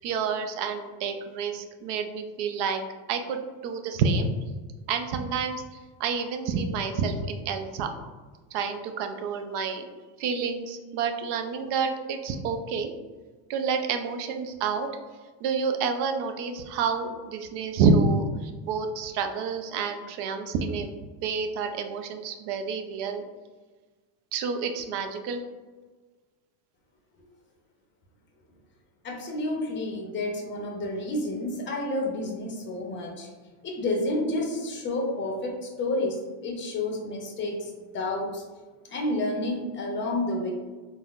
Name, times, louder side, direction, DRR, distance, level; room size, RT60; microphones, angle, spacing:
voice 1, 0.0-2.8 3.1-4.3 4.9-5.6 6.0-7.9 8.5-9.8 10.2-12.9 13.5-14.9 15.4-20.9 21.2-23.2 24.3-25.4, right 5 dB, 60° right, 6 dB, 0.5 m, -28 dB
voice 2, 29.0-33.3 33.6-38.4 38.9-40.5, left 2 dB, 25° left, 0 dB, 0.6 m, -30 dB
3.8 x 2.1 x 2.4 m, 1.4 s
supercardioid pair, 130°, 48 cm